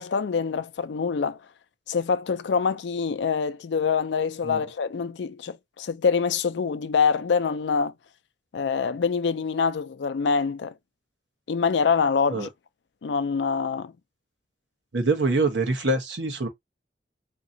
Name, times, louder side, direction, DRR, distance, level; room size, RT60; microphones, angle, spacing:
voice 1, 0.0-1.4 1.9-7.9 8.5-10.7 11.5-12.5 13.0-13.9, left 5 dB, 80° left, 0.4 m, -25 dB
voice 2, 14.9-16.5, right 2 dB, 90° right, 1.1 m, -24 dB
3.9 x 2.9 x 2.6 m
head